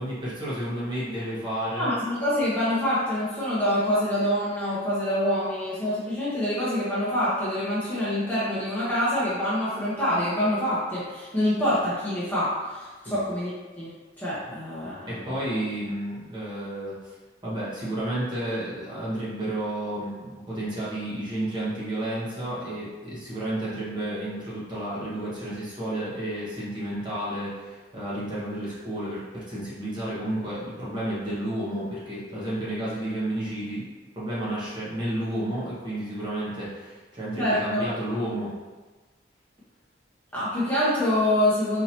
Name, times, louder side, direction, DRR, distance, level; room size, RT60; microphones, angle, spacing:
voice 1, 0.0-1.9 13.0-13.2 15.1-17.1 17.4-33.8 34.1-38.5, right 1 dB, 25° right, -9 dB, 1.1 m, -31 dB
voice 2, 1.8-13.5 13.8-13.9 14.2-15.2 37.4-37.8 40.3-41.8, left 1 dB, 10° left, -10 dB, 0.9 m, -26 dB
4.2 x 2.8 x 2.9 m, 1.3 s
head